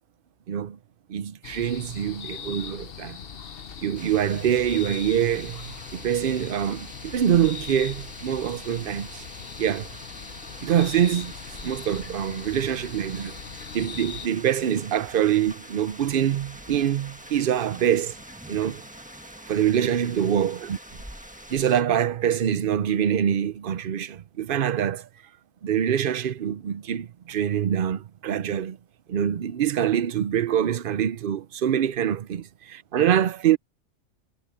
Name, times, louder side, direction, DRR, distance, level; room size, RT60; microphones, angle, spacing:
voice 1, 0.5-0.8 1.1-3.2 3.8-9.2 9.6-9.9 10.6-11.3 11.6-13.3 13.7-18.1 18.5-18.8 19.5-20.8 21.5-25.1 25.6-28.8 29.1-33.6, right 9 dB, 55° right, 0.8 m, -25 dB
sound 1, 1.4-14.3, left 7 dB, 55° left, 1.0 m, -40 dB
sound 2, 4.0-21.8, right 1 dB, 5° right, 1.5 m, -44 dB
omnidirectional pair, 1.3 m